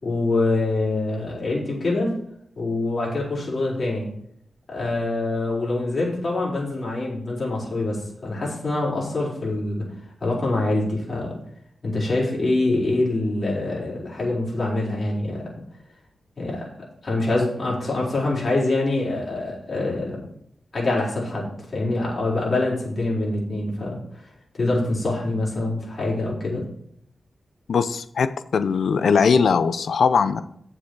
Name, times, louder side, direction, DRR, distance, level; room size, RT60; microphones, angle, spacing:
voice 1, 0.0-2.1 2.6-4.1 4.7-9.9 10.2-11.3 11.8-15.5 16.4-20.2 20.7-24.0 24.6-26.6, left 2 dB, 45° left, -4 dB, 4.4 m, -25 dB
voice 2, 27.7-30.4, left 5 dB, 80° left, 12 dB, 0.6 m, -20 dB
9.7 x 7.1 x 4.7 m, 0.69 s
wide cardioid pair, 100°, 0 cm